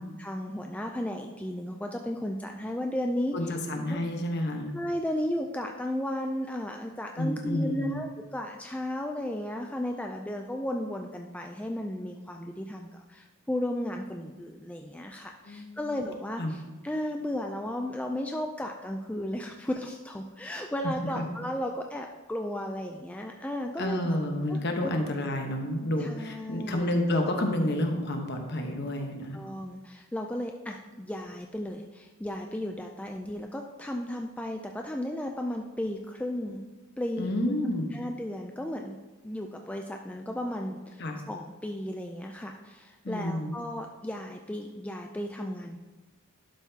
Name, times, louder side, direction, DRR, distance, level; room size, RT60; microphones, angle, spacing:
voice 1, 0.0-3.5 3.9-4.0 4.7-24.2 24.5-24.9 26.0-26.9 29.3-36.7 37.0-37.5 37.9-39.0 39.2-45.8, left 1 dB, 5° left, 2 dB, 0.3 m, -34 dB
voice 2, 3.3-4.7 7.2-7.9 15.5-15.9 16.4-16.5 21.1-21.2 23.8-29.4 37.2-37.9 41.0-41.2 43.0-43.5, left 1 dB, 50° left, 3 dB, 1.1 m, -29 dB
11.5 x 5.9 x 2.8 m, 1.2 s
head